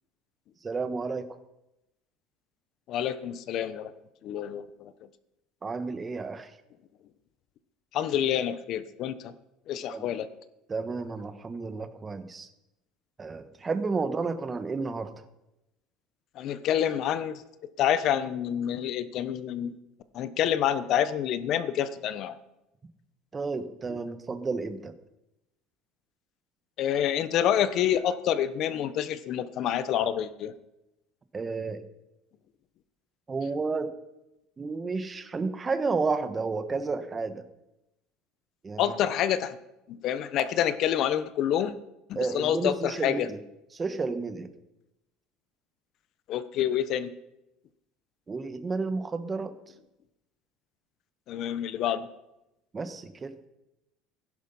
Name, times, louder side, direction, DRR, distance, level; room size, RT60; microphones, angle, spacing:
voice 1, 0.6-1.4 5.6-6.5 9.9-10.1 10.7-12.5 13.2-15.1 23.3-24.9 31.3-31.8 33.3-33.9 34.6-37.4 38.6-38.9 42.1-43.4 43.7-44.5 48.3-49.5 52.7-53.3, right 4 dB, 20° right, 11 dB, 1.2 m, -31 dB
voice 2, 2.9-3.9 4.2-4.9 7.9-9.3 9.7-10.3 16.4-17.4 17.8-19.8 20.1-22.4 26.8-30.5 38.8-39.6 39.9-41.7 42.1-43.3 46.3-47.1 51.3-52.1, left 10 dB, 50° left, 13 dB, 1.0 m, -27 dB
16.0 x 11.0 x 5.6 m, 0.92 s
cardioid pair, 130°, 0 cm